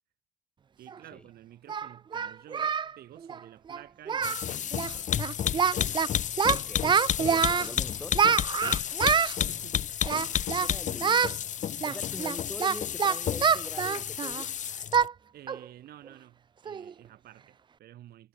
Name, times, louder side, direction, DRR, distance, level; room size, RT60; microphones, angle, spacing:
voice 1, 0.8-5.1 8.6-8.9 9.3-9.8 15.3-18.3, right 13 dB, 65° right, 6.8 m, -51 dB
Singing, 0.9-1.0 1.7-2.9 3.2-3.4 3.7-3.8 4.1-4.4 4.7-4.9 5.2-6.1 6.4-7.7 8.1-9.4 10.0-10.7 11.0-11.3 11.8-14.4 14.9-15.1 15.5-15.6 16.1-16.2 16.6-16.9, right 7 dB, 30° right, 0.5 m, -26 dB
sound 1, 4.2-15.1, left 9 dB, 45° left, 1.1 m, -31 dB
voice 2, 6.5-8.2 10.2-11.4 11.8-14.6, left 1 dB, 5° left, 1.5 m, -44 dB
cardioid pair, 110°, 17 cm